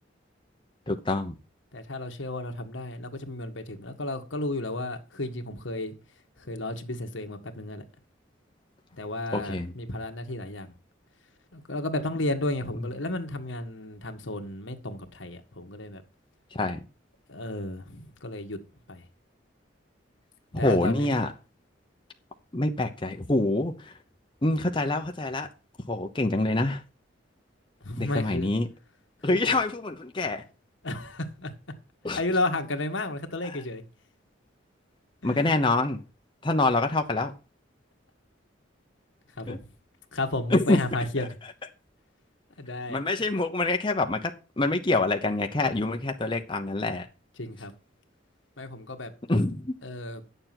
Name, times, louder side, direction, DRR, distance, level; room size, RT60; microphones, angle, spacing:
voice 1, 0.9-1.3 9.3-9.7 16.5-16.8 20.5-21.3 22.5-23.9 24.4-25.5 25.9-26.8 28.0-28.7 29.2-30.4 32.0-32.2 35.2-36.0 36.4-37.3 39.5-39.6 40.5-40.8 42.9-47.1 49.3-49.7, left 2 dB, 25° left, 0.9 m, -26 dB
voice 2, 1.7-5.9 6.4-7.8 8.9-10.7 11.5-16.0 17.3-18.6 18.9-19.0 20.5-21.1 27.8-28.5 29.3-29.6 30.8-31.5 32.1-33.8 35.2-35.6 39.4-39.7 40.1-41.4 42.6-43.2 47.4-47.7 48.6-49.1 49.8-50.2, left 2 dB, 85° left, 1.7 m, -33 dB
10.5 x 7.0 x 6.0 m
head